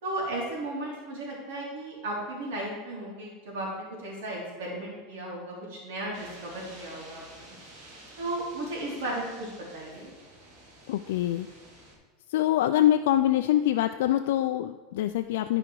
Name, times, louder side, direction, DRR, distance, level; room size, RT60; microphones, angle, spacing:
voice 1, 0.0-7.5 8.2-10.1, right 1 dB, 75° right, -4 dB, 3.2 m, -35 dB
sound 1, 6.1-11.9, right 1 dB, 50° right, 3.1 m, -50 dB
voice 2, 10.9-11.5 12.3-15.6, left 12 dB, 80° left, 8 dB, 0.3 m, -24 dB
13.5 x 5.0 x 4.7 m, 1.4 s
supercardioid pair, 170°, 0 cm